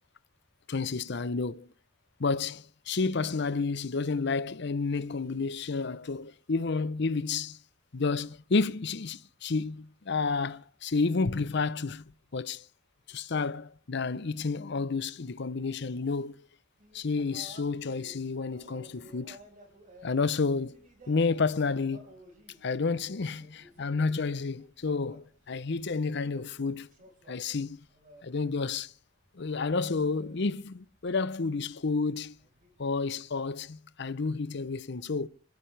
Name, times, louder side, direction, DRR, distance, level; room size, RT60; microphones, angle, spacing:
voice 1, 0.7-1.7 2.2-7.6 7.9-12.6 13.1-16.3 16.9-19.4 20.0-20.7 21.1-22.1 22.6-26.9 27.3-27.8 28.2-28.9 29.4-32.3 32.8-35.3, left 4 dB, 65° left, 0.7 m, -30 dB
sound 1, 16.8-28.9 29.2-33.6, right 1 dB, 45° right, 4.8 m, -56 dB
25.0 x 16.0 x 3.4 m
head